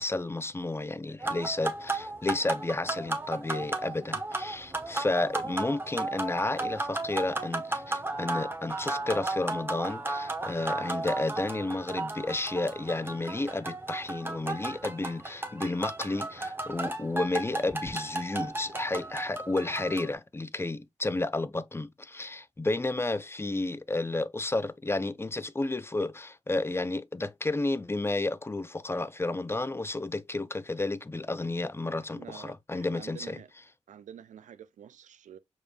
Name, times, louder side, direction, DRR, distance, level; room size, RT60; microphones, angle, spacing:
voice 1, 0.0-33.4, left 2 dB, 20° left, 0.5 m, -32 dB
sound 1, 1.2-20.1, right 2 dB, 15° right, 1.0 m, -34 dB
voice 2, 32.1-33.5 33.9-35.4, right 9 dB, 80° right, 0.5 m, -48 dB
5.0 x 3.0 x 2.4 m
cardioid pair, 50°, 13 cm